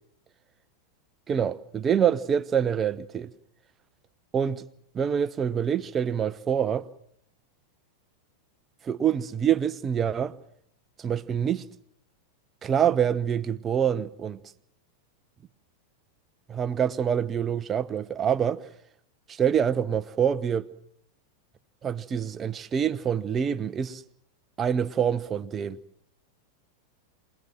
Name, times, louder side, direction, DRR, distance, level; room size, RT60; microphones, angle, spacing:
voice 1, 1.3-3.3 4.3-4.6 4.9-6.9 8.8-10.3 11.0-11.6 12.6-14.4 16.5-18.7 19.3-20.7 21.8-24.0 24.6-25.8, right 8 dB, 25° right, 0.9 m, -26 dB
27.0 x 19.5 x 7.7 m
figure-of-eight pair, 90°, 0 cm